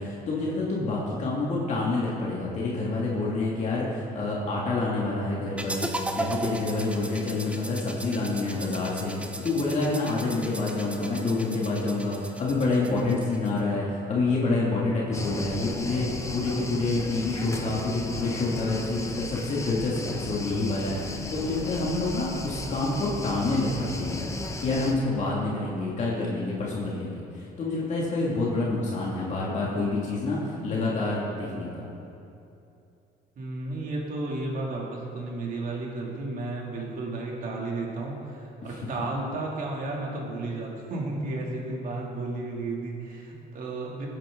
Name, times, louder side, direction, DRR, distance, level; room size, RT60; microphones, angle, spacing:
voice 1, 0.0-24.3 24.6-31.9 38.6-38.8, left 2 dB, 45° left, -5 dB, 2.4 m, -28 dB
sound 1, 5.6-13.6, right 2 dB, 5° right, 0.8 m, -37 dB
sound 2, 15.1-24.9, left 2 dB, 15° left, 1.0 m, -36 dB
voice 2, 26.0-26.4 33.4-44.1, right 2 dB, 55° right, -2 dB, 2.9 m, -33 dB
19.0 x 9.9 x 3.9 m, 2.7 s
cardioid pair, 110°, 17 cm